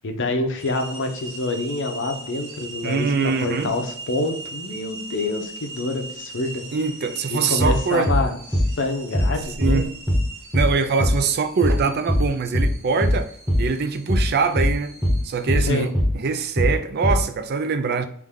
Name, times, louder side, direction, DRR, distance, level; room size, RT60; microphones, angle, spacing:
voice 1, 0.0-6.6 7.3-9.8 15.6-15.9, left 2 dB, 55° left, 0.7 m, -27 dB
sound 1, 0.6-15.9, right 2 dB, 80° right, 1.4 m, -40 dB
voice 2, 2.8-3.7 6.7-8.1 9.6-9.9 10.5-13.3 13.6-14.9 15.2-18.1, right 5 dB, 45° right, 0.4 m, -23 dB
sound 2, 7.6-7.8 8.1-8.3 8.5-8.7 9.1-9.3 9.6-9.8 10.1-10.3 10.5-10.7 11.0-11.2 11.6-11.8 12.1-12.3 12.5-12.7 13.0-13.2 13.5-13.7 14.1-14.3 14.6-14.8 15.0-15.2 15.5-15.7 15.9-16.1 16.6-16.8 17.0-17.2, equal, 5° right, 1.0 m, -20 dB
3.5 x 3.2 x 3.6 m
head